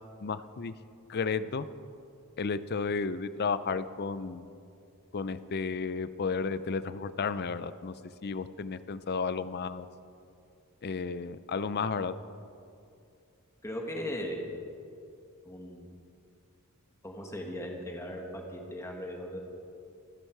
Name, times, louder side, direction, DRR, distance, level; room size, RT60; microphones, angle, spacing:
voice 1, 0.2-0.7 1.1-1.7 2.4-4.5 5.1-7.9 8.2-9.9 10.8-12.2, left 5 dB, 45° left, 14 dB, 0.5 m, -33 dB
voice 2, 13.6-14.4 15.4-15.9 17.0-19.4, equal, 15° left, 1 dB, 1.8 m, -38 dB
25.0 x 10.0 x 4.7 m, 2.5 s
head